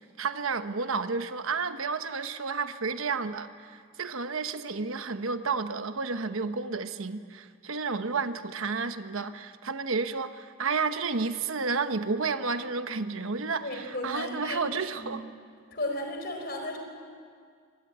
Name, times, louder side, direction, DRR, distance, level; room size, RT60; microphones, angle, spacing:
voice 1, 0.2-15.3, right 4 dB, 80° right, 9 dB, 1.1 m, -31 dB
voice 2, 13.6-15.1 15.7-16.8, left 1 dB, 45° left, 3 dB, 4.5 m, -34 dB
24.0 x 20.0 x 9.4 m, 2.1 s
head